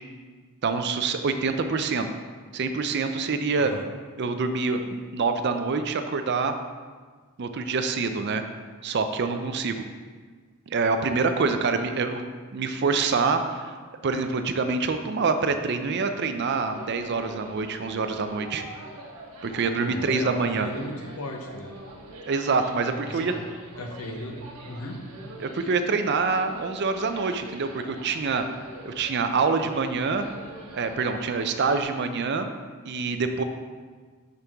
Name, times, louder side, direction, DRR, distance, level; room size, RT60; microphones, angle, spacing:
voice 1, 0.6-2.1 2.5-3.7 4.2-6.6 7.4-8.4 8.8-9.8 10.7-12.2 12.5-13.7 14.0-18.6 19.4-20.7 22.3-23.3 25.4-28.4 28.8-30.3 30.7-32.5 32.8-33.4, right 4 dB, 50° right, 8 dB, 0.5 m, -26 dB
voice 2, 3.6-3.9 19.8-21.7 23.0-23.5 23.8-24.4 24.7-25.0, left 1 dB, 75° left, 2 dB, 1.0 m, -36 dB
sound 1, 16.4-31.8, right 1 dB, 85° right, 1.1 m, -44 dB
6.7 x 5.9 x 3.5 m, 1.5 s
head